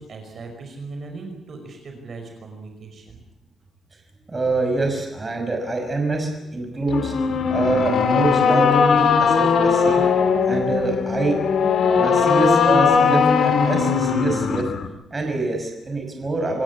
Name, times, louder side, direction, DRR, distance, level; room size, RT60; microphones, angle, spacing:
voice 1, 0.0-3.2, right 3 dB, 50° right, 3 dB, 5.6 m, -38 dB
voice 2, 4.3-7.1 7.5-10.0 10.5-11.3 12.0-14.6 15.1-16.6, right 2 dB, 25° right, 3 dB, 6.2 m, -25 dB
sound 1, 6.9-14.9, left 6 dB, 65° left, 2.7 m, -19 dB
27.5 x 16.5 x 8.6 m, 0.93 s
cardioid pair, 130°, 0 cm